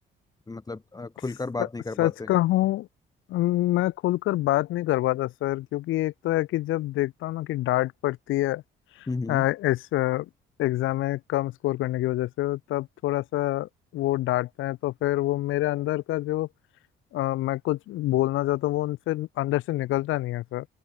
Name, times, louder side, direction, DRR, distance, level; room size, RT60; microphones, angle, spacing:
voice 1, 0.5-2.3 9.1-9.5, left 3 dB, 20° left, 1.1 m, -33 dB
voice 2, 2.0-2.9 3.3-8.6 9.0-10.3 10.6-16.5 17.1-20.7, left 16 dB, 85° left, 0.7 m, -26 dB
open air
cardioid pair, 90°, 20 cm